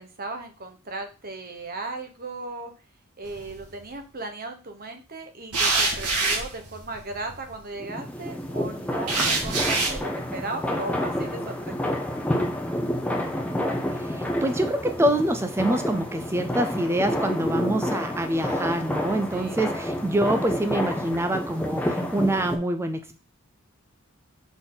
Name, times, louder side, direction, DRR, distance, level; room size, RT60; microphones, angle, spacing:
voice 1, 0.0-2.7 3.2-12.0 19.0-19.7, right 2 dB, 40° right, 5 dB, 1.0 m, -37 dB
sound 1, 3.2-3.8 5.5-7.5 9.1-10.0, right 3 dB, 85° right, 1.7 m, -26 dB
sound 2, 7.8-22.6, left 1 dB, 5° left, 0.7 m, -29 dB
voice 2, 13.9-23.2, right 1 dB, 10° right, 7 dB, 0.4 m, -26 dB
6.1 x 3.9 x 3.9 m, 0.33 s
head